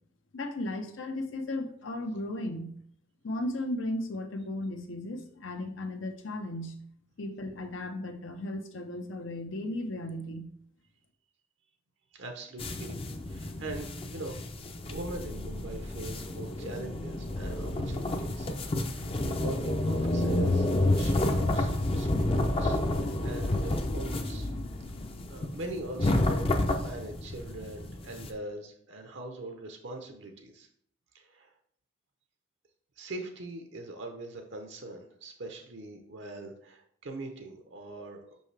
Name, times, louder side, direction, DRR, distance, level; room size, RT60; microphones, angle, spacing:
voice 1, 0.3-2.8 3.2-6.8 7.2-10.5, left 1 dB, 80° left, 7 dB, 0.7 m, -35 dB
voice 2, 12.1-13.0 13.3-14.4 14.8-18.5 18.8-20.7 20.9-21.7 22.0-24.5 24.9-30.7 31.1-31.5 33.0-38.4, right 2 dB, 65° right, 4 dB, 0.7 m, -42 dB
sound 1, 12.6-28.3, left 1 dB, 30° left, 0.5 m, -30 dB
5.4 x 5.4 x 3.3 m, 0.65 s
head